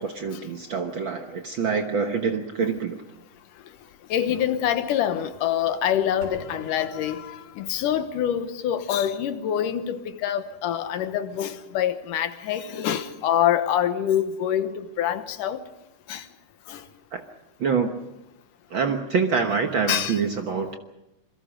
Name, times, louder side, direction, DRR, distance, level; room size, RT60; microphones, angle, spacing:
voice 1, 0.0-3.0 17.1-17.2 17.6-18.0 18.7-20.8, right 5 dB, 55° right, 1.4 m, -26 dB
voice 2, 4.1-15.6 16.1-16.2 16.7-16.8 19.9-20.2, left 10 dB, 85° left, 2.7 m, -25 dB
sound 1, 6.2-8.0, right 1 dB, 30° right, 5.5 m, -45 dB
27.5 x 22.5 x 5.1 m
omnidirectional pair, 3.6 m